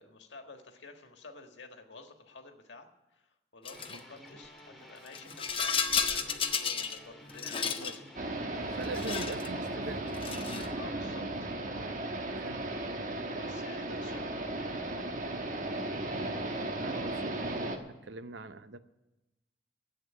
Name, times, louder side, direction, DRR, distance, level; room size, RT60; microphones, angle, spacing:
voice 1, 0.0-8.1 10.7-11.3 13.3-14.3, left 3 dB, 85° left, 5 dB, 1.6 m, -51 dB
Rattle, 3.6-4.0 5.1-7.0 7.3-8.0 8.8-9.5 10.1-10.7, left 6 dB, 30° left, 0.8 m, -32 dB
sound 1, 3.7-10.0, equal, ahead, 1.8 m, -52 dB
voice 2, 7.5-7.9 8.7-10.0 11.8-11.9 12.4-12.7 13.3-13.4 16.4-16.5 16.8-18.8, right 3 dB, 85° right, 12 dB, 0.7 m, -42 dB
sound 2, 8.2-17.8, right 2 dB, 45° right, 1.2 m, -36 dB
11.0 x 8.1 x 9.4 m, 1.0 s
head